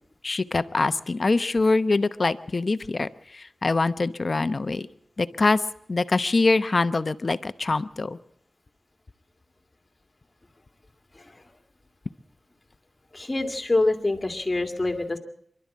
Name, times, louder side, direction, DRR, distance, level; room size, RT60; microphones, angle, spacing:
voice 1, 0.2-4.9 5.2-5.6 5.9-8.2, left 3 dB, 45° left, 13 dB, 0.9 m, -24 dB
voice 2, 13.1-15.2, left 2 dB, 25° left, 7 dB, 2.2 m, -26 dB
25.0 x 12.0 x 8.5 m, 0.69 s
cardioid pair, 70°, 0 cm